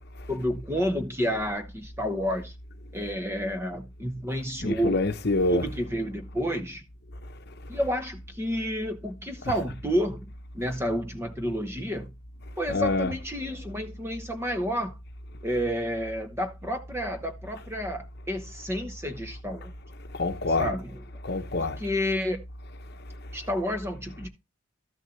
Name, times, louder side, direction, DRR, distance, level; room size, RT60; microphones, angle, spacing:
voice 1, 0.3-2.5 2.9-5.0 5.5-6.8 7.7-12.1 12.6-14.9 15.4-19.7 20.6-21.0 21.6-22.4 23.3-24.3, equal, 10° right, 1.0 m, -30 dB
voice 2, 4.6-5.6 9.4-9.5 12.7-13.1 20.1-20.7 21.2-21.8, left 2 dB, 50° left, 0.9 m, -26 dB
13.0 x 6.5 x 3.2 m
head